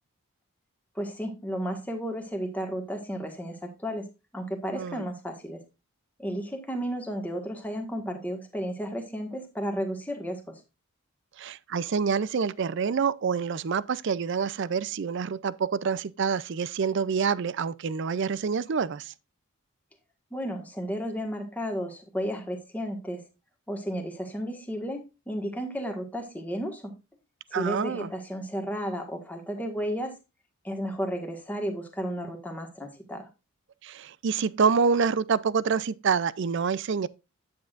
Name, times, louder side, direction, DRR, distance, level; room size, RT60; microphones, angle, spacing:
voice 1, 0.9-4.0 4.3-5.6 6.2-10.6 20.3-23.2 23.7-26.9 27.5-30.1 30.6-33.3, equal, 5° left, 1.5 m, -33 dB
voice 2, 4.7-5.0 11.4-19.1 27.5-28.1 33.8-37.1, right 5 dB, 55° right, 0.4 m, -27 dB
9.4 x 8.6 x 2.5 m
head